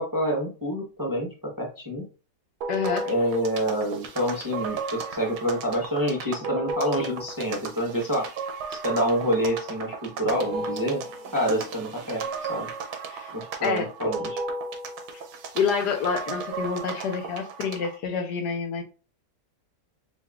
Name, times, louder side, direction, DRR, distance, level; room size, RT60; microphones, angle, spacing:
voice 1, 0.0-2.0 3.0-8.3 8.7-11.0 11.3-12.7 13.3-14.4, equal, 20° right, 0.7 m, -27 dB
sound 1, 2.6-18.0, right 3 dB, 80° right, 1.3 m, -34 dB
voice 2, 2.7-3.1 13.1-13.3 13.6-13.9 15.5-18.8, left 6 dB, 85° left, 1.4 m, -27 dB
6.8 x 2.7 x 2.4 m
omnidirectional pair, 1.7 m